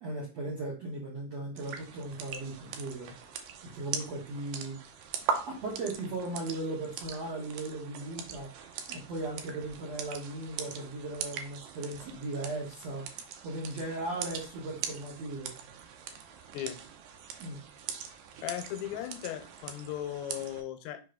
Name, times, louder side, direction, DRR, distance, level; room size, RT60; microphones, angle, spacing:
voice 1, 0.0-3.1 3.6-4.8 5.3-8.5 8.9-13.1 13.4-15.5 17.4-17.6, right 2 dB, 65° right, -4 dB, 1.6 m, -37 dB
sound 1, 1.6-20.6, right 7 dB, 85° right, 1.9 m, -41 dB
voice 2, 18.4-21.0, left 11 dB, 80° left, 9 dB, 2.9 m, -37 dB
6.1 x 5.2 x 3.9 m, 0.34 s
omnidirectional pair, 5.1 m